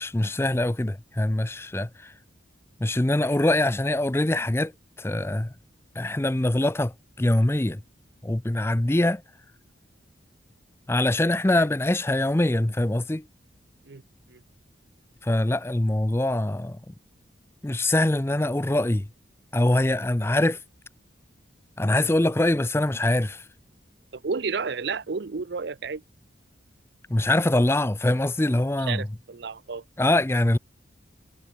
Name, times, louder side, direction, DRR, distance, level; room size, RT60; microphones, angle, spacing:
voice 1, 0.0-2.1 2.8-4.7 5.0-5.5 6.0-7.8 8.2-9.2 10.9-13.2 15.2-16.9 17.6-19.1 19.5-20.6 21.8-23.4 27.1-29.1 30.0-30.6, left 1 dB, 15° left, 0.5 m, -23 dB
voice 2, 24.1-26.0 28.9-29.8, right 5 dB, 60° right, 0.6 m, -31 dB
head